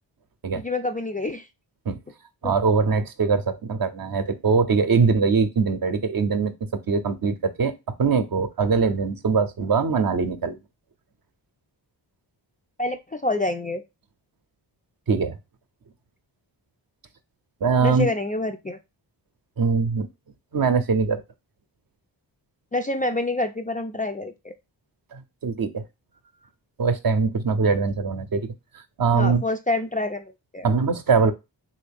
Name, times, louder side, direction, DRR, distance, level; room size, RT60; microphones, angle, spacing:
voice 1, 0.5-1.5 2.4-2.5 12.8-13.8 17.8-18.8 22.7-24.5 29.1-30.7, left 2 dB, 20° left, 0.3 m, -27 dB
voice 2, 2.4-6.5 6.9-7.7 8.0-10.6 15.1-15.3 17.6-18.1 19.6-20.1 20.5-21.2 25.1-25.8 26.8-28.4 29.0-29.4 30.6-31.3, right 5 dB, 50° right, 0.7 m, -22 dB
3.1 x 2.6 x 3.4 m
cardioid pair, 55°, 45 cm